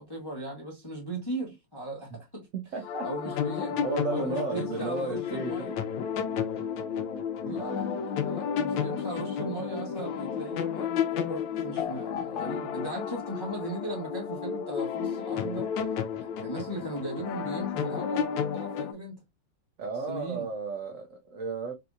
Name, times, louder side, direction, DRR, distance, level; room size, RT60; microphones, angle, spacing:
voice 1, 0.0-2.5 3.0-3.8 4.1-5.8 7.4-15.7 16.4-19.2 20.1-20.5, right 1 dB, 25° left, 0.6 m, -38 dB
voice 2, 2.5-3.1 3.8-5.7 7.4-7.9 19.8-21.7, right 3 dB, 70° right, 0.7 m, -34 dB
sound 1, 2.8-18.9, left 7 dB, 75° left, 1.2 m, -32 dB
4.1 x 2.8 x 2.3 m
omnidirectional pair, 2.3 m